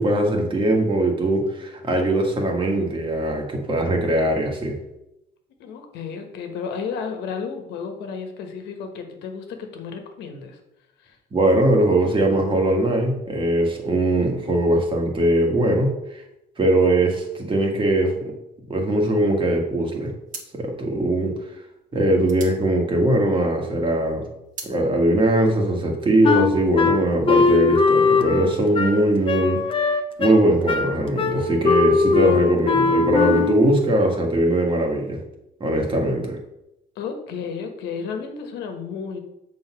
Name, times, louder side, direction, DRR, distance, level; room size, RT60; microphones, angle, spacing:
voice 1, 0.0-4.8 11.3-16.2 16.6-18.1 18.7-20.1 20.5-21.3 21.9-24.3 24.6-29.6 30.2-35.2 35.6-36.4, right 1 dB, 30° right, 2 dB, 1.8 m, -20 dB
voice 2, 5.6-10.6 11.0-11.2 36.9-39.2, left 6 dB, 85° left, 5 dB, 1.3 m, -32 dB
sound 1, 19.6-19.8 20.3-23.6 24.0-24.8, right 4 dB, 50° right, 1.7 m, -41 dB
Wind instrument woodwind instrument, 26.2-33.7, left 5 dB, 30° left, 0.8 m, -20 dB
6.9 x 4.0 x 6.1 m, 0.88 s
cardioid pair, 110°, 17 cm